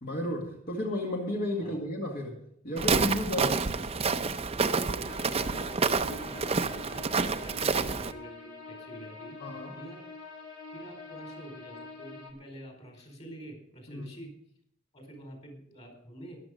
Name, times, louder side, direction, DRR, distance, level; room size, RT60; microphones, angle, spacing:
voice 1, 0.0-2.4 2.6-3.8 7.6-7.7 9.4-9.7 13.9-14.1, left 1 dB, 50° left, -1 dB, 2.1 m, -33 dB
Walk footsteps, 2.8-8.1, right 4 dB, 30° right, 0.6 m, -28 dB
voice 2, 4.6-10.0 10.7-14.3 14.9-16.5, right 1 dB, 35° left, 3 dB, 4.6 m, -47 dB
sound 1, 5.0-12.3, left 4 dB, 75° left, 2.6 m, -46 dB
14.0 x 11.0 x 5.1 m, 0.68 s
head